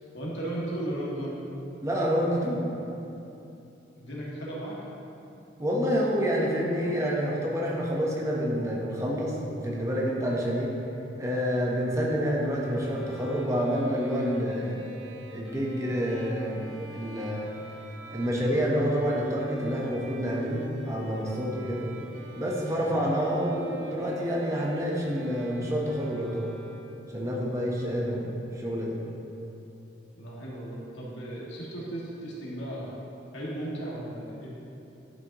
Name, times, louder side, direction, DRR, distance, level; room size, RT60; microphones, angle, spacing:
voice 1, 0.1-1.4 4.0-4.8 21.6-21.8 22.8-23.0 30.2-32.9 33.3-34.5, right 1 dB, 75° left, -6 dB, 1.8 m, -36 dB
voice 2, 1.8-2.6 5.6-10.7 11.2-16.6 16.9-17.5 18.1-21.9 22.4-26.5 27.1-29.0, equal, 15° right, -3 dB, 0.8 m, -28 dB
Bowed string instrument, 12.5-27.2, right 2 dB, 80° right, 0.6 m, -46 dB
11.0 x 5.6 x 2.9 m, 2.9 s
head